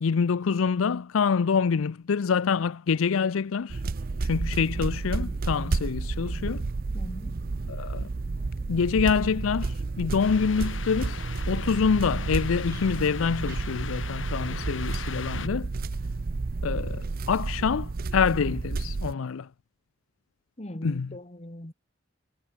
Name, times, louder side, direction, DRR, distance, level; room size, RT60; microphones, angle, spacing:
voice 1, 0.0-3.8 4.2-6.6 7.7-8.1 8.7-15.7 16.6-19.5 20.8-21.1, left 6 dB, 90° left, 0.5 m, -26 dB
sound 1, 3.7-19.1, right 3 dB, 45° right, 0.5 m, -31 dB
voice 2, 6.9-7.4 20.6-21.7, left 1 dB, 30° left, 1.9 m, -39 dB
sound 2, 8.3-14.4, left 1 dB, 50° left, 5.7 m, -52 dB
sound 3, 10.2-15.5, left 6 dB, 70° left, 2.4 m, -40 dB
head